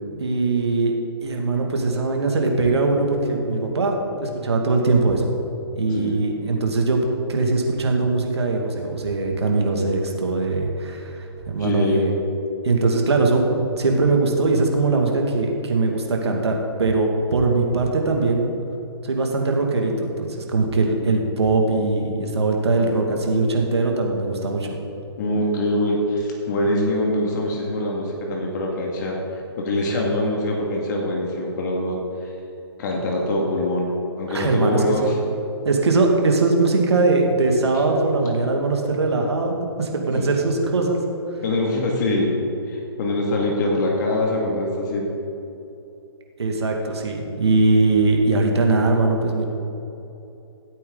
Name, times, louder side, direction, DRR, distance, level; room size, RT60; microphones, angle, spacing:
voice 1, 0.2-0.9 1.2-5.2 5.7-12.1 12.6-18.5 19.0-24.7 34.3-35.1 35.6-41.0 46.4-49.5, right 3 dB, 80° right, 2 dB, 2.1 m, -21 dB
voice 2, 5.9-6.2 11.6-12.0 25.2-29.2 29.6-32.3 32.8-35.2 40.1-40.2 41.4-42.4 42.7-45.1, left 1 dB, 45° left, -1 dB, 2.1 m, -24 dB
15.0 x 8.7 x 3.9 m, 2.9 s
hypercardioid pair, 140°, 14 cm